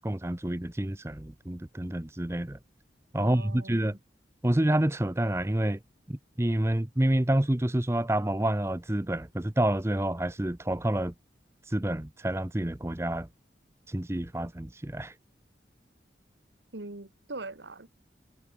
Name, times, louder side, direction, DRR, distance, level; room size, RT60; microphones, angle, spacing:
voice 1, 0.0-2.6 3.1-4.0 4.4-5.8 6.1-11.1 11.7-13.3 13.9-15.1, right 1 dB, 15° right, 0.7 m, -28 dB
voice 2, 3.2-4.0 16.7-17.9, right 2 dB, 80° right, 1.8 m, -42 dB
head